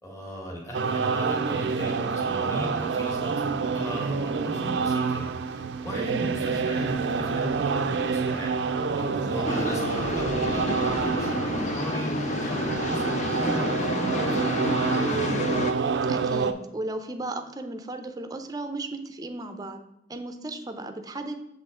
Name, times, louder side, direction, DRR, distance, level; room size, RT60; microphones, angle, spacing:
voice 1, 0.0-3.3 3.7-15.4, equal, 20° left, -1 dB, 1.6 m, -36 dB
sound 1, 0.7-16.5, right 5 dB, 85° right, 0.4 m, -27 dB
voice 2, 5.9-6.3 16.1-19.8 20.1-21.3, right 2 dB, 20° right, 6 dB, 0.5 m, -35 dB
sound 2, 9.4-15.7, left 2 dB, 40° left, 0.4 m, -30 dB
7.2 x 4.0 x 3.7 m, 0.86 s
head